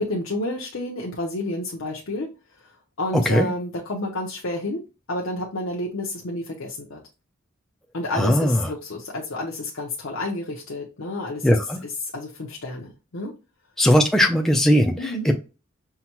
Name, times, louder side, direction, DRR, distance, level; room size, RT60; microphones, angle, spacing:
voice 1, 0.0-2.3 2.6-4.8 5.1-7.0 7.9-13.3 15.0-15.3, left 1 dB, 75° left, -2 dB, 0.7 m, -30 dB
voice 2, 8.2-8.6 11.4-11.8 13.8-14.9 15.3-15.4, equal, ahead, 1 dB, 0.4 m, -18 dB
5.6 x 2.2 x 2.9 m, 0.30 s
head